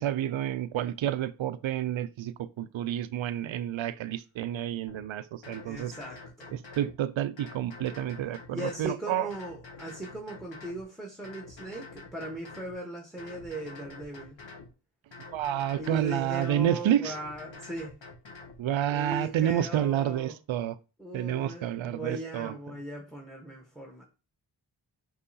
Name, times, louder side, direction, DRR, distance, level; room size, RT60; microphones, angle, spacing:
voice 1, 0.0-5.9 6.5-9.3 15.3-17.1 18.6-20.8 21.1-22.5, right 11 dB, 70° right, 0.5 m, -29 dB
sound 1, 4.9-5.0 5.4-6.9 7.4-8.9 9.3-10.8 11.2-12.8 13.2-14.7 15.1-16.6 17.0-18.6, left 4 dB, 65° left, 1.6 m, -47 dB
voice 2, 5.6-6.5 8.5-14.4 15.7-18.0 18.9-20.4 21.0-24.0, right 1 dB, ahead, 1.2 m, -39 dB
5.4 x 3.1 x 2.8 m
cardioid pair, 45°, 48 cm